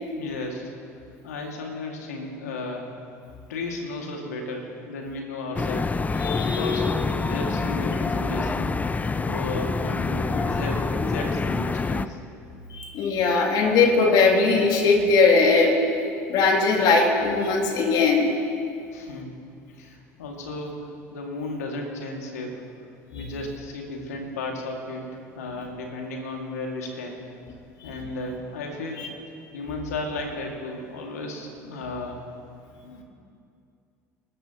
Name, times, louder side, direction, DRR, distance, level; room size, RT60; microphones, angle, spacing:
voice 1, 0.2-0.7 1.2-2.9 3.5-5.9 6.4-6.9 7.2-8.7 9.2-12.2 18.9-19.3 19.7-22.6 23.1-27.2 27.8-29.1 29.5-32.2 32.8-33.0, left 2 dB, 80° left, 1 dB, 2.2 m, -34 dB
sound 1, 5.6-12.1, left 4 dB, 20° left, 0.5 m, -26 dB
voice 2, 6.2-6.9 7.2-7.3 12.7-15.8 16.3-18.3 23.1-23.2 27.8-27.9 29.0-29.1, left 4 dB, 55° left, 0 dB, 2.6 m, -20 dB
23.0 x 13.5 x 3.0 m, 2.5 s
hypercardioid pair, 70°, 8 cm